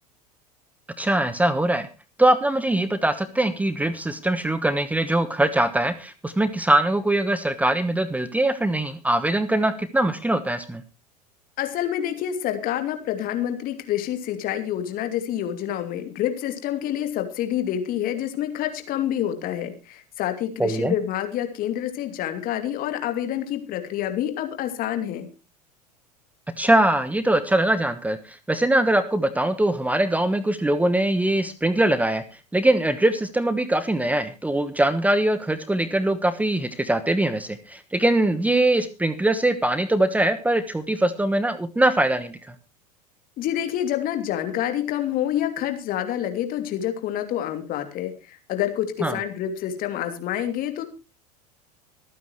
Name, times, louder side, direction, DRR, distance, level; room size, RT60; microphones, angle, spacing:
voice 1, 1.0-1.9 2.2-10.8 20.6-20.9 26.6-32.2 32.5-42.3 49.0-49.2, right 1 dB, 5° right, 13 dB, 1.2 m, -22 dB
voice 2, 11.6-25.3 43.4-50.8, left 11 dB, 45° left, 7 dB, 2.8 m, -27 dB
24.5 x 9.4 x 3.1 m, 0.29 s
figure-of-eight pair, 80°, 20 cm